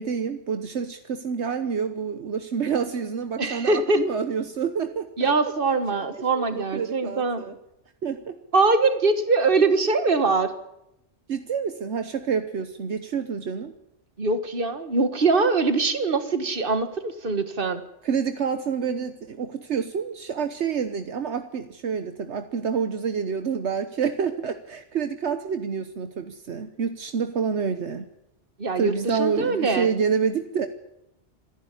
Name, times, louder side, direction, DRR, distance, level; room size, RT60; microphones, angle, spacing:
voice 1, 0.0-5.3 6.3-7.6 8.0-8.4 11.3-13.7 18.0-28.1 28.8-30.7, right 6 dB, 75° right, 8 dB, 1.3 m, -28 dB
voice 2, 3.4-4.0 5.2-7.4 8.5-10.5 14.2-17.8 28.6-29.9, right 3 dB, 50° right, 9 dB, 1.8 m, -23 dB
27.0 x 11.0 x 9.9 m, 0.83 s
omnidirectional pair, 1.2 m